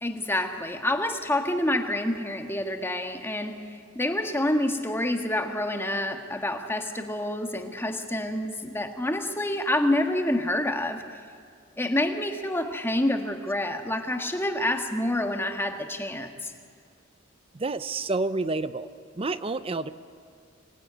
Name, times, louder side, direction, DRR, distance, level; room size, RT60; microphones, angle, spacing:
voice 1, 0.0-3.6 3.9-11.0 11.8-16.5, left 1 dB, 10° left, 5 dB, 1.6 m, -27 dB
voice 2, 17.5-18.9 19.2-19.9, right 3 dB, 30° right, 13 dB, 0.7 m, -29 dB
25.5 x 19.0 x 9.5 m, 2.1 s
head